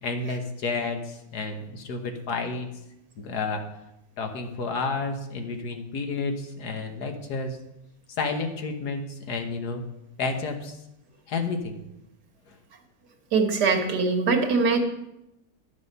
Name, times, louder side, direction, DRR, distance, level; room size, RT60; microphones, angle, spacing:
voice 1, 0.0-2.7 3.2-3.6 4.2-7.6 8.2-9.8 10.2-10.8 11.3-11.8 12.5-12.6, left 4 dB, 80° left, 5 dB, 1.7 m, -30 dB
voice 2, 13.3-14.8, right 4 dB, 85° right, 3 dB, 1.9 m, -22 dB
11.0 x 7.1 x 5.5 m, 0.88 s
omnidirectional pair, 1.7 m